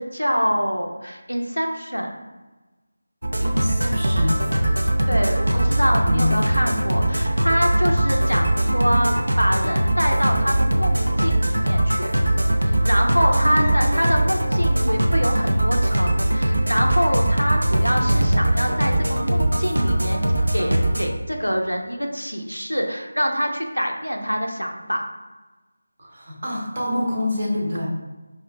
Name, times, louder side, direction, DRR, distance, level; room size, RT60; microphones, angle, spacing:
voice 1, 0.0-2.2 5.1-12.1 12.6-20.2 20.5-25.0, equal, 90° left, 2 dB, 0.7 m, -25 dB
sound 1, 3.2-21.1, right 1 dB, 70° right, 0.5 m, -21 dB
voice 2, 3.4-4.6 6.0-6.3 13.3-14.1 26.0-27.9, left 1 dB, 40° right, -2 dB, 0.9 m, -27 dB
5.4 x 2.4 x 2.3 m, 1.2 s
figure-of-eight pair, 165°, 0 cm